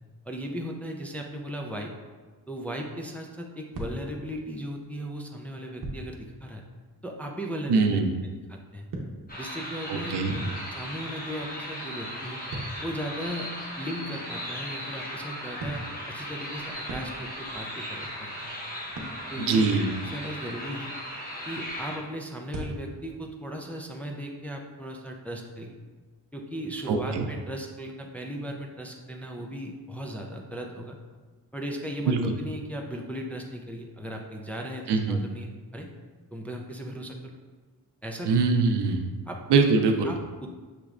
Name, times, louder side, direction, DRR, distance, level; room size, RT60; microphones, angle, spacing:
voice 1, 0.3-1.9 2.5-6.6 7.0-8.0 8.5-8.9 9.4-12.4 12.8-15.8 16.1-18.5 19.3-19.6 20.0-20.9 21.4-25.8 26.3-31.0 31.5-35.9 36.3-37.3 38.0-38.4 39.3-39.4 40.0-40.5, equal, 5° left, 0 dB, 0.3 m, -37 dB
sound 1, 3.7-4.7 5.8-6.2 8.3-11.0 11.3-14.0 15.6-17.5 18.0-18.4 18.9-19.3 22.4-23.1, right 1 dB, 55° right, 0.8 m, -40 dB
voice 2, 7.7-8.1 9.9-10.4 19.5-19.9 26.9-27.3 32.1-32.2 34.9-35.2 38.3-39.0 39.5-40.1, right 4 dB, 85° right, 5 dB, 0.5 m, -23 dB
sound 2, 9.3-22.0, equal, 20° left, 0.9 m, -37 dB
5.9 x 3.1 x 2.4 m, 1.4 s
wide cardioid pair, 105°, 40 cm